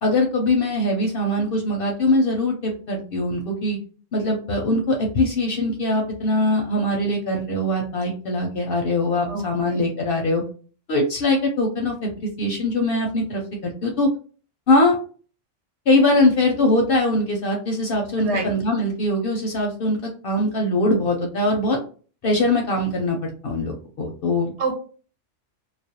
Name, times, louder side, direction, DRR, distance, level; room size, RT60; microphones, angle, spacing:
voice 1, 0.0-3.8 4.1-10.4 10.9-14.1 14.7-15.0 15.9-21.8 22.2-24.5, left 2 dB, 60° left, 1 dB, 0.6 m, -22 dB
voice 2, 9.3-9.9 18.2-18.5 24.6-24.8, right 3 dB, 65° right, 3 dB, 1.0 m, -27 dB
2.4 x 2.1 x 2.7 m, 0.38 s
omnidirectional pair, 1.3 m